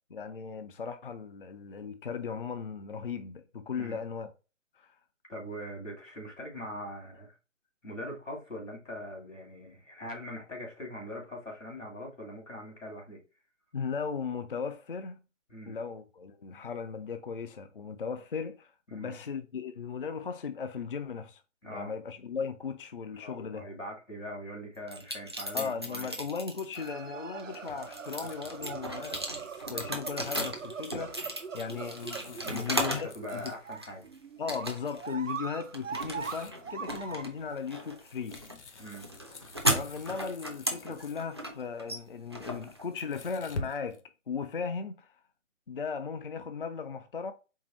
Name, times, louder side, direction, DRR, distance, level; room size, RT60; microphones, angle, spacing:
voice 1, 0.1-4.3 4.7-5.0 13.7-15.1 15.7-21.4 21.7-23.6 25.5-33.5 34.4-38.4 39.7-45.2 45.7-47.3, left 5 dB, 50° left, 0.4 m, -37 dB
voice 2, 5.3-7.4 7.8-13.2 15.5-15.8 18.9-19.1 21.6-21.9 23.2-26.2 32.4-34.1 38.8-39.1, equal, 80° left, 2.4 m, -42 dB
sound 1, 24.9-26.9 27.4-33.1 33.5-34.1 34.5-35.1 35.4-43.3, right 1 dB, 20° right, 0.4 m, -36 dB
sound 2, 26.7-37.6, right 6 dB, 85° right, 0.6 m, -42 dB
sound 3, 27.8-33.9 34.5-34.7 35.1-35.2 35.5-36.6 37.1-41.5 42.4-44.0, left 3 dB, 65° left, 0.9 m, -47 dB
4.5 x 3.4 x 3.0 m
figure-of-eight pair, 140°, 37 cm